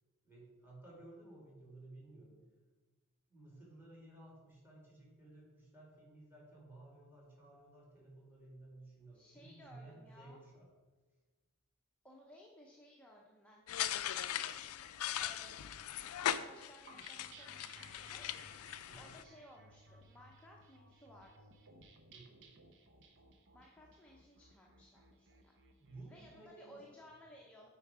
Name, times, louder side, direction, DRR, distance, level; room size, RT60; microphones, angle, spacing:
voice 1, 0.2-2.4 3.3-10.7 18.9-19.1 22.1-22.5 25.8-26.8, right 2 dB, 10° right, -4 dB, 2.5 m, -56 dB
voice 2, 9.1-10.4 12.0-13.6 13.9-14.2 15.2-15.6 16.0-18.4 18.9-21.5 23.5-25.5 26.1-27.7, equal, 5° left, -2 dB, 0.8 m, -59 dB
sound 1, 13.7-19.2, left 10 dB, 70° left, 0.4 m, -40 dB
sound 2, 16.9-26.3, right 2 dB, 55° right, 0.9 m, -60 dB
9.1 x 4.7 x 4.9 m, 1.3 s
head